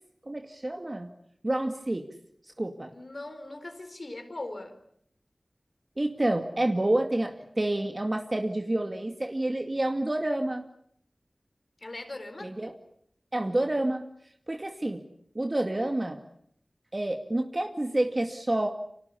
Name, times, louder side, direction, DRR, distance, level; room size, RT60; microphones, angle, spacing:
voice 1, 0.3-1.1 1.4-2.0 2.6-2.9 6.0-10.6 12.4-12.7 13.3-14.0 14.5-15.0 15.3-16.2 16.9-18.7, right 1 dB, 35° right, 4 dB, 2.2 m, -28 dB
voice 2, 2.9-4.8 11.8-12.6, left 2 dB, 55° left, 9 dB, 4.3 m, -40 dB
30.0 x 26.5 x 7.1 m, 0.67 s
wide cardioid pair, 55°, 0 cm